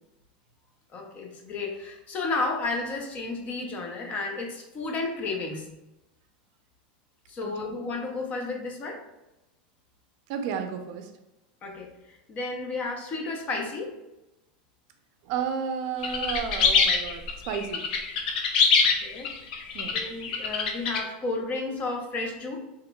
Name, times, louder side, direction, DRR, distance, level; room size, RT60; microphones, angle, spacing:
voice 1, 0.9-5.6 7.3-9.0 11.6-11.9 12.3-13.9 19.0-19.3 19.8-22.6, left 3 dB, 30° left, 1 dB, 0.7 m, -32 dB
voice 2, 10.3-11.1 15.3-17.8 19.7-20.0, right 7 dB, 55° right, 6 dB, 0.5 m, -32 dB
sound 1, 16.0-21.0, left 5 dB, 70° left, 0.6 m, -24 dB
3.6 x 2.9 x 2.3 m, 0.95 s
supercardioid pair, 140°, 5 cm